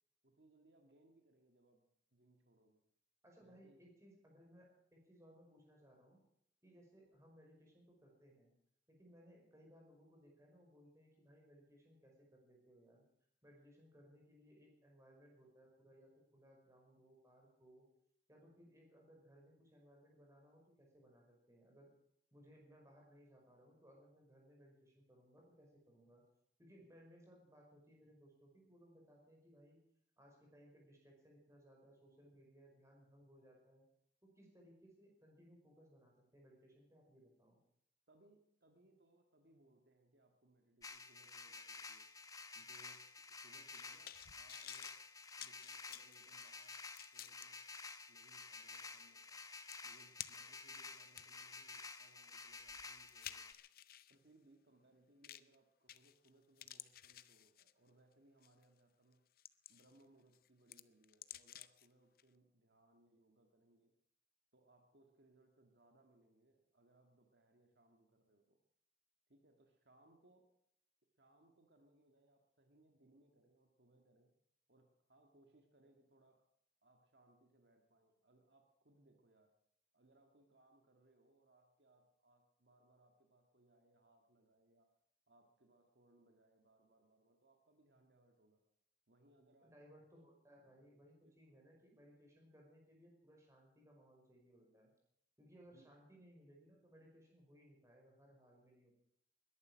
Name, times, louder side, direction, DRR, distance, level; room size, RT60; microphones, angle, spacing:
voice 1, 0.2-2.8 3.4-3.8 38.1-42.1 42.5-45.0 45.4-46.8 47.1-47.6 48.1-49.4 49.8-53.6 54.1-59.3 59.7-63.9 64.5-68.6 69.3-70.5 71.2-74.3 74.7-76.5 76.8-79.6 79.9-84.9 85.3-88.6 89.1-89.7 90.8-90.9 91.2-91.6 95.7-95.9, right 2 dB, 70° right, 4 dB, 1.8 m, -70 dB
voice 2, 3.2-6.2 6.6-8.5 8.9-13.0 13.4-17.9 18.3-21.9 22.3-26.2 26.6-29.8 30.2-33.8 34.2-37.6 89.6-94.9 95.4-98.9, equal, 15° right, 0 dB, 5.2 m, -64 dB
sound 1, 40.8-53.5, left 4 dB, 20° left, 0.9 m, -52 dB
sound 2, 43.6-47.5 48.0-48.1 49.3-49.4 49.7-50.6 51.1-54.2 55.2-55.6 55.9-56.3 56.6-57.9 58.4-58.6 59.1-60.0 60.3-61.9 62.2-62.3, left 12 dB, 55° left, 0.6 m, -54 dB
21.0 x 11.0 x 6.2 m, 0.72 s
head